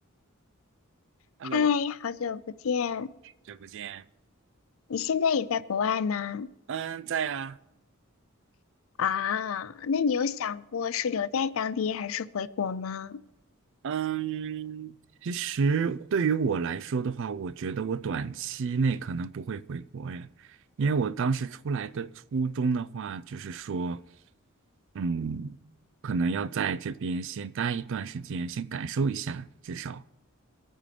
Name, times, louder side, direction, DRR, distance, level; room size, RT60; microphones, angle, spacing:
voice 1, 1.5-3.1 4.9-6.5 9.0-13.2, left 7 dB, 65° left, 0.4 m, -28 dB
voice 2, 3.5-4.0 6.7-7.6 13.8-15.0 15.2-20.3 20.8-24.0 24.9-25.6 26.0-30.0, right 5 dB, 60° right, 0.4 m, -30 dB
22.5 x 8.8 x 3.3 m
head